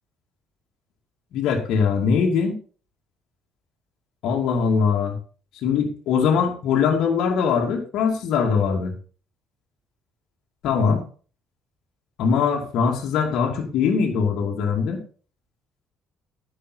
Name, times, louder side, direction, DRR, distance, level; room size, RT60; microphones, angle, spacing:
voice 1, 1.3-2.6 4.2-5.1 5.6-8.9 10.6-11.0 12.2-15.0, left 6 dB, 60° left, 1 dB, 2.5 m, -21 dB
10.5 x 10.0 x 4.1 m, 0.39 s
figure-of-eight pair, 50°, 0 cm